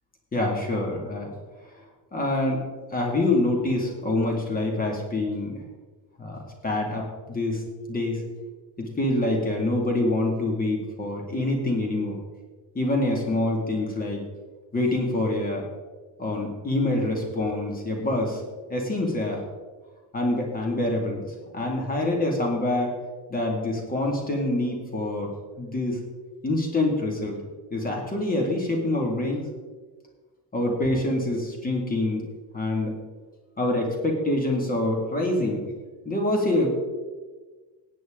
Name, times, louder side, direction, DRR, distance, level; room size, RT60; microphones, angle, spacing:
voice 1, 0.3-1.3 2.1-5.6 6.2-7.6 7.9-8.2 8.8-12.2 12.7-14.2 14.7-15.6 16.2-18.4 18.7-19.4 20.1-21.2 21.5-22.9 23.3-25.3 25.6-26.0 26.4-27.4 27.7-29.4 30.5-32.3 32.5-32.9 33.6-35.7 36.0-36.8, left 2 dB, 20° left, 0 dB, 2.3 m, -26 dB
17.5 x 9.1 x 3.8 m, 1.4 s
cardioid pair, 170°, 45 cm